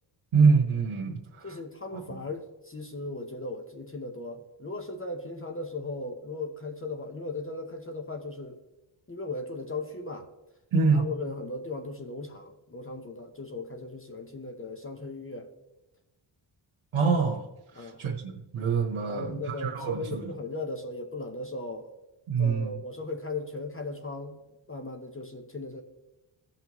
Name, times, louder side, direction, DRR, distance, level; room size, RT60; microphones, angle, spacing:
voice 1, 0.3-1.5 2.1-2.2 10.7-11.0 16.9-17.4 17.7-20.3 22.3-22.8, right 5 dB, 85° right, -1 dB, 1.3 m, -25 dB
voice 2, 1.4-8.6 9.1-10.3 10.9-15.5 17.7-18.0 19.1-21.9 22.4-24.4 24.7-25.8, left 2 dB, 25° left, 4 dB, 0.8 m, -37 dB
16.5 x 5.7 x 3.0 m, 1.0 s
wide cardioid pair, 140°, 49 cm